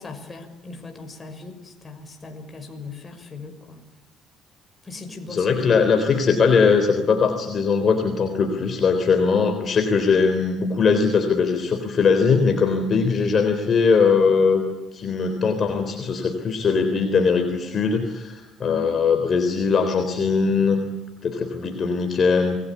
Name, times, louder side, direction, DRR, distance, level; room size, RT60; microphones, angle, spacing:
voice 1, 0.0-3.8 4.8-5.7 18.6-19.0, left 3 dB, 25° left, 5 dB, 6.1 m, -38 dB
voice 2, 5.3-14.6 14.9-20.8 21.2-22.6, left 5 dB, 40° left, 5 dB, 3.8 m, -20 dB
28.0 x 21.0 x 8.5 m, 1.1 s
cardioid pair, 110°, 0 cm